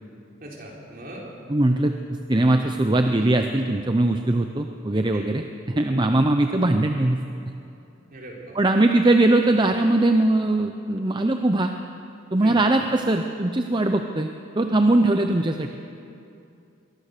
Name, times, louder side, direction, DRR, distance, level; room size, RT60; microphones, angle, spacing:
voice 1, 0.4-1.3 5.1-5.3 5.9-6.0 8.1-8.6 12.4-12.6, right 1 dB, 45° right, -3 dB, 4.2 m, -40 dB
voice 2, 1.5-7.2 8.5-11.7 12.3-14.3 14.6-15.7, right 2 dB, 20° right, 5 dB, 0.7 m, -21 dB
22.5 x 18.5 x 6.7 m, 2.6 s
head